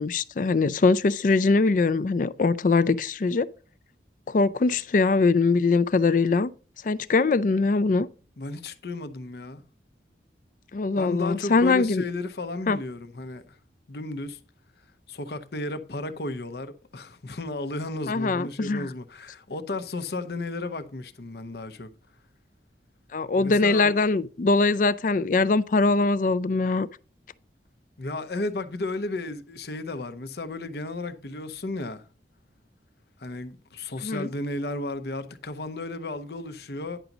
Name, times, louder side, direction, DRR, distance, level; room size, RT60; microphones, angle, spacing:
voice 1, 0.0-3.5 4.3-6.5 6.8-8.1 10.7-12.0 12.7-12.8 18.1-18.9 23.1-26.9 34.0-34.3, left 3 dB, 45° left, 0.4 m, -22 dB
voice 2, 8.4-9.6 11.0-13.6 13.9-14.4 15.1-21.9 23.4-24.0 28.0-32.1 33.2-37.0, left 2 dB, 60° left, 0.8 m, -33 dB
10.0 x 5.9 x 4.0 m
head